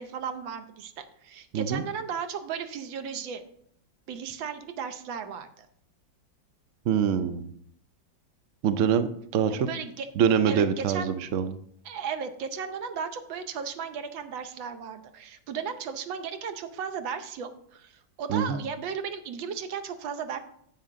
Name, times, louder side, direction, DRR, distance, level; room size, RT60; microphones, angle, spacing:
voice 1, 0.0-3.4 4.1-5.7 9.5-10.1 10.5-11.2 11.8-20.4, right 6 dB, 85° right, 9 dB, 1.6 m, -35 dB
voice 2, 6.9-7.5 8.6-9.6 10.2-11.6 18.3-18.6, right 7 dB, 70° right, 11 dB, 0.7 m, -25 dB
9.5 x 7.5 x 3.7 m, 0.67 s
omnidirectional pair, 2.0 m